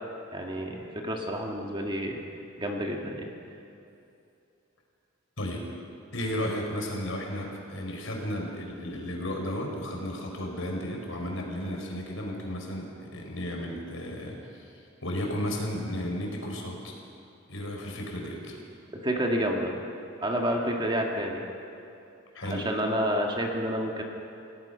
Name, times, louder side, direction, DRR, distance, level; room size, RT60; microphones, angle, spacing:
voice 1, 0.3-2.2 2.6-3.3 18.9-19.7 20.2-21.4 22.4-24.0, equal, 25° right, 0 dB, 2.0 m, -29 dB
voice 2, 6.1-16.9 17.5-18.6 22.3-22.7, equal, 70° left, 0 dB, 4.9 m, -34 dB
29.0 x 17.5 x 5.7 m, 2.7 s
head